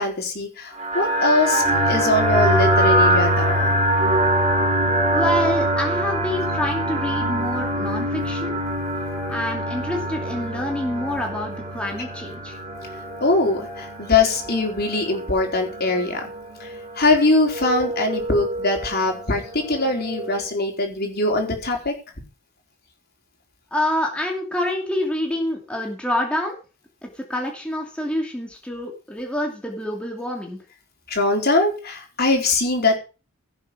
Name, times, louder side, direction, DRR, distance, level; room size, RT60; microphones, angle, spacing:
voice 1, 0.0-3.7 13.2-16.3 16.6-21.9 31.1-33.0, left 2 dB, 45° left, 2 dB, 4.1 m, -22 dB
sound 1, 0.8-20.5, right 1 dB, 35° right, 5.1 m, -24 dB
voice 2, 5.1-8.5 9.3-12.6 23.7-26.6 27.0-30.6, left 1 dB, 5° left, 0 dB, 2.6 m, -27 dB
16.5 x 7.4 x 6.2 m, 0.34 s
head